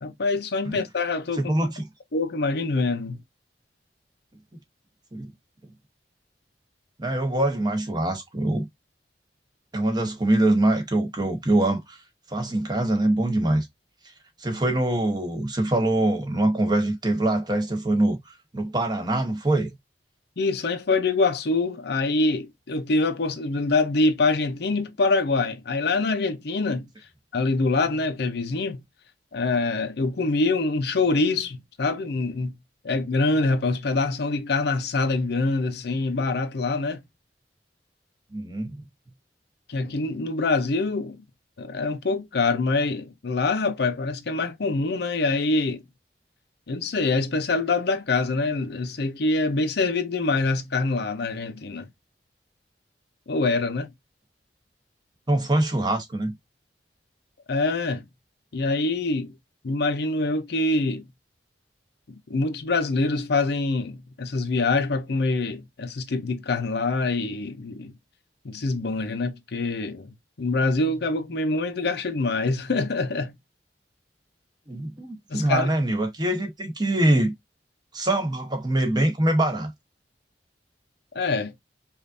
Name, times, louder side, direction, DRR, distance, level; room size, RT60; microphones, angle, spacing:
voice 1, 0.0-1.5 2.1-3.2 20.4-26.9 27.3-28.8 29.3-32.5 32.8-37.0 39.7-41.2 41.6-45.8 46.7-51.9 53.3-53.9 57.5-58.1 58.5-59.3 59.6-61.1 62.1-67.9 68.4-73.3 75.3-75.7 81.1-81.5, left 3 dB, 65° left, 0.6 m, -25 dB
voice 2, 1.4-1.8 5.1-5.3 7.0-8.7 9.7-12.0 12.3-13.7 14.4-19.8 38.3-38.8 55.3-56.3 74.7-77.3 77.9-79.7, right 1 dB, 25° right, 1.1 m, -24 dB
5.2 x 2.5 x 2.6 m
head